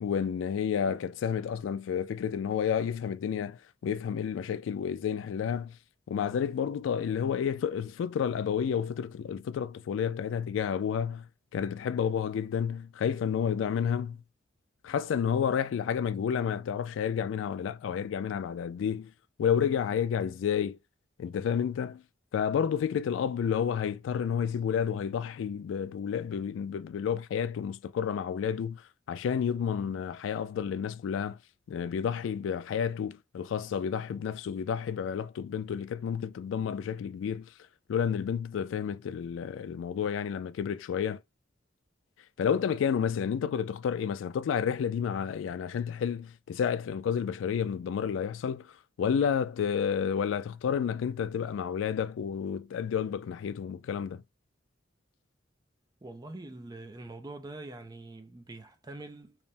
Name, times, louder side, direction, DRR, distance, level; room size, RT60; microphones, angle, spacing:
voice 1, 0.0-5.8 6.1-11.3 11.5-14.2 14.8-19.1 19.4-20.8 21.2-22.0 22.3-31.4 31.7-37.5 37.9-41.2 42.4-54.2, left 7 dB, 90° left, 0.3 m, -30 dB
voice 2, 56.0-59.4, right 2 dB, 20° right, 0.4 m, -44 dB
3.2 x 2.0 x 2.6 m
head